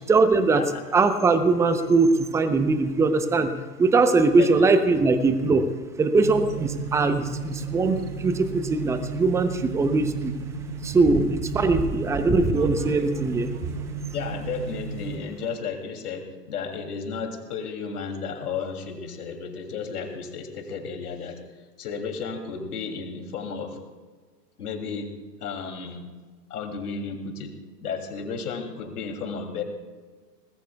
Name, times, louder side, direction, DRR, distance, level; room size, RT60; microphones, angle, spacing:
voice 1, 0.1-0.6 0.9-3.5 3.8-5.7 6.0-10.3 10.8-13.5, right 3 dB, 5° right, 10 dB, 0.7 m, -21 dB
voice 2, 4.4-5.0 14.1-21.4 21.8-23.8 24.6-25.1 25.4-26.0 26.5-27.5 27.8-29.6, left 5 dB, 70° left, 3 dB, 3.0 m, -33 dB
sound 1, 6.1-15.2, right 5 dB, 65° right, 2.5 m, -34 dB
24.0 x 19.5 x 2.3 m, 1.4 s
hypercardioid pair, 120°, 47 cm